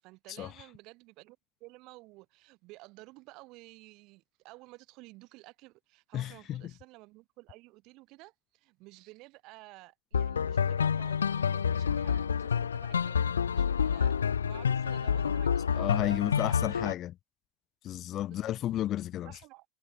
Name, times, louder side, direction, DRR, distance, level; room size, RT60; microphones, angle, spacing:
voice 1, 0.0-16.7 18.3-18.5 19.2-19.7, right 22 dB, 50° right, 7.1 m, -53 dB
voice 2, 6.1-6.6 15.7-17.1 17.8-19.3, left 12 dB, 40° left, 1.0 m, -32 dB
sound 1, 10.1-16.9, left 7 dB, 85° left, 0.4 m, -28 dB
hypercardioid pair, 85°, 0 cm